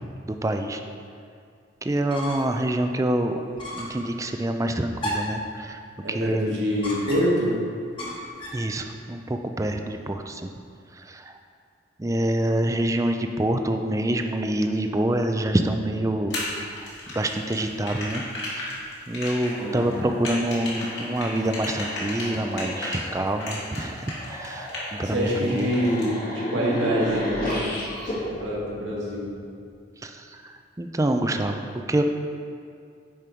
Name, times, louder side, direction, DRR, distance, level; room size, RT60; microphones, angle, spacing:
voice 1, 0.3-0.8 1.8-3.4 3.7-5.8 6.1-6.6 8.5-10.5 10.9-11.3 12.0-18.2 18.5-18.7 19.1-24.7 25.0-25.7 30.0-32.0, right 1 dB, 15° right, 6 dB, 0.4 m, -26 dB
sound 1, 1.9-2.6 3.0-3.1 3.6-4.0 5.0-5.4 6.8-7.5 8.0-8.7, equal, 25° left, 1.5 m, -33 dB
voice 2, 6.0-7.7 19.6-20.0 25.0-29.4, equal, 85° right, -4 dB, 1.9 m, -26 dB
sound 2, 16.3-23.0 23.4-25.0 25.3-26.1, left 2 dB, 65° left, 2.2 m, -34 dB
sound 3, 19.3-29.6, equal, 50° left, 1.8 m, -34 dB
9.8 x 5.2 x 4.5 m, 2.3 s
head